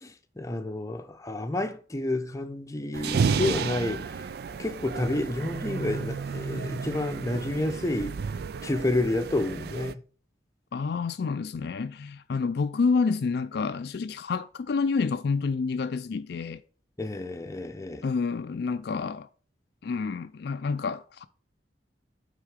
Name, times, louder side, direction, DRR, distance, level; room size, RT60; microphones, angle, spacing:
voice 1, 0.0-4.3 4.6-8.2 8.6-10.0 17.0-18.0, left 2 dB, 20° left, 0.7 m, -30 dB
sound 1, 2.9-9.9, right 5 dB, 60° right, 0.4 m, -32 dB
voice 2, 10.7-16.6 18.0-19.3 19.8-21.2, left 4 dB, 65° left, 0.4 m, -28 dB
9.3 x 3.8 x 4.9 m
head